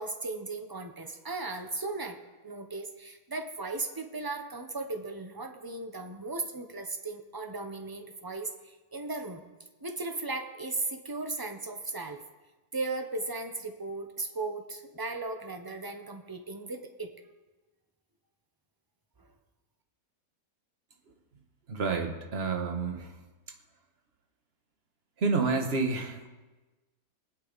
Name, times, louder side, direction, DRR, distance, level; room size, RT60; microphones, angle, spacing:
voice 1, 0.0-2.2 2.4-9.4 9.8-12.2 12.7-17.1 19.2-19.3, right 3 dB, 20° right, 6 dB, 0.6 m, -36 dB
voice 2, 21.7-23.1 25.2-26.3, right 4 dB, 40° right, 4 dB, 1.4 m, -29 dB
20.0 x 9.1 x 4.0 m, 1.2 s
omnidirectional pair, 1.8 m